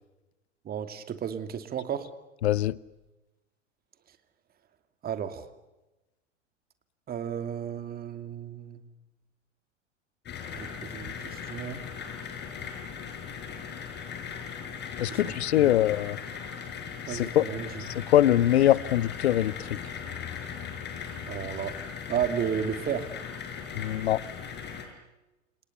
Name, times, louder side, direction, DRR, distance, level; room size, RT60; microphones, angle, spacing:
voice 1, 0.6-2.1 5.0-5.5 7.1-8.8 10.6-11.8 15.1-15.7 17.1-17.8 21.3-21.8 22.1-23.1, right 8 dB, 25° right, 2.7 m, -33 dB
voice 2, 2.4-2.8 15.0-16.2 17.1-17.5 18.1-19.7 23.8-24.2, left 13 dB, 60° left, 0.9 m, -23 dB
sound 1, 10.3-24.9, left 7 dB, 30° left, 6.6 m, -38 dB
29.5 x 28.0 x 7.0 m
figure-of-eight pair, 95°, 37 cm